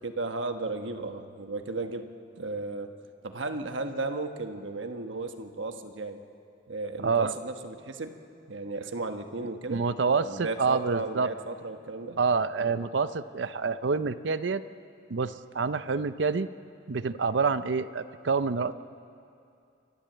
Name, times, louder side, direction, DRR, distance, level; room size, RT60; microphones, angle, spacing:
voice 1, 0.0-3.0 3.2-6.2 6.7-8.2 8.5-9.8 10.2-12.2 12.6-12.7, right 3 dB, 85° right, 6 dB, 1.3 m, -35 dB
voice 2, 7.0-7.3 9.7-11.3 12.2-14.6 15.1-16.5 16.9-18.7, right 4 dB, 70° right, 13 dB, 0.6 m, -27 dB
29.0 x 12.0 x 7.9 m, 2.5 s
head